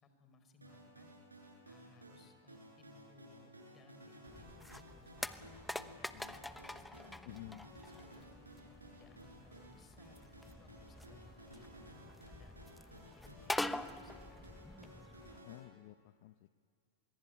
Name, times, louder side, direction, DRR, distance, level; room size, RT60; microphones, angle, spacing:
voice 1, 0.0-1.1 1.7-5.4 5.9-8.3 8.8-12.5 12.9-14.4, left 4 dB, 25° left, 8 dB, 4.8 m, -64 dB
sound 1, 0.6-15.6, equal, 90° right, 7.6 m, -57 dB
sound 2, 4.3-15.4, left 1 dB, 5° left, 1.1 m, -46 dB
voice 2, 7.2-7.7 15.4-16.6, left 17 dB, 55° left, 13 dB, 0.8 m, -52 dB
24.5 x 22.5 x 9.7 m, 2.2 s
figure-of-eight pair, 95°, 0 cm